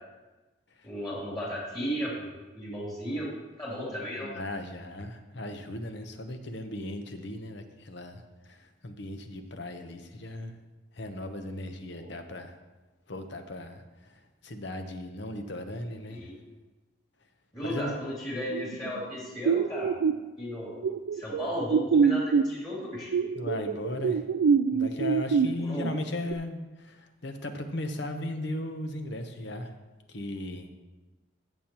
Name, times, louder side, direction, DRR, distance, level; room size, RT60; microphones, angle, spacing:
voice 1, 0.8-2.3 2.5-3.3 3.6-4.3 11.9-12.1 16.1-16.4 17.5-19.9 20.4-20.8 21.1-23.1 25.6-25.9, equal, 20° left, -6 dB, 2.8 m, -34 dB
voice 2, 4.2-10.6 10.9-12.6 13.1-16.3 17.6-18.0 23.4-24.2 24.7-29.7 30.1-30.7, left 1 dB, 60° left, 6 dB, 0.9 m, -37 dB
sound 1, 18.5-19.0 19.5-20.2 20.8-22.5 23.1-25.5 25.8-26.3, right 6 dB, 80° right, 0.3 m, -25 dB
15.5 x 7.2 x 3.0 m, 1.2 s
head